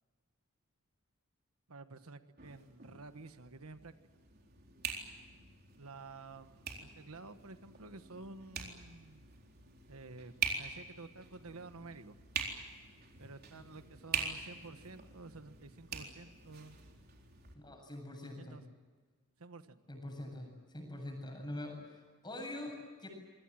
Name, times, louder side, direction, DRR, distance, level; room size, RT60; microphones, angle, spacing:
voice 1, 1.7-3.9 5.8-9.2 9.9-12.2 13.2-16.8 18.2-18.6 19.4-19.8, right 3 dB, 75° right, 10 dB, 1.3 m, -51 dB
sound 1, 2.4-17.5, right 5 dB, 45° right, 4.0 m, -44 dB
voice 2, 17.5-18.6 19.9-23.1, left 1 dB, 20° left, 3 dB, 7.7 m, -44 dB
27.5 x 23.0 x 7.6 m, 1.4 s
head